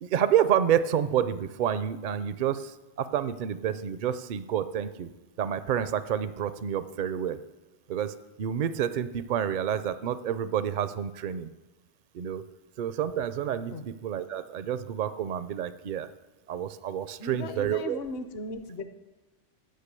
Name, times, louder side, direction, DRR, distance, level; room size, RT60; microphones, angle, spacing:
voice 1, 0.0-5.1 5.4-7.4 7.9-11.5 12.1-12.5 12.8-16.1 16.5-18.0, right 9 dB, 55° right, 13 dB, 0.5 m, -29 dB
voice 2, 17.2-18.8, left 3 dB, 60° left, 8 dB, 1.0 m, -37 dB
10.5 x 5.6 x 8.3 m, 1.1 s
omnidirectional pair, 1.2 m